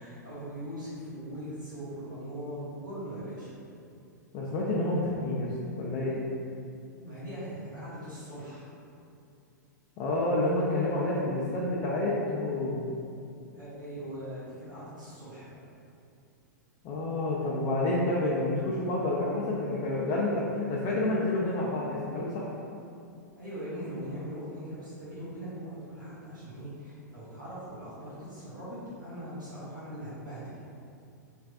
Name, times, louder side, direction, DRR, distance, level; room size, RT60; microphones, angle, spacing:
voice 1, 0.0-3.5 7.0-8.7 13.5-15.6 23.3-30.6, equal, 90° right, -13 dB, 1.5 m, -40 dB
voice 2, 4.3-6.2 10.0-13.0 16.8-22.5, left 2 dB, 35° left, -6 dB, 0.5 m, -29 dB
3.3 x 3.3 x 2.3 m, 2.5 s
hypercardioid pair, 105°, 10 cm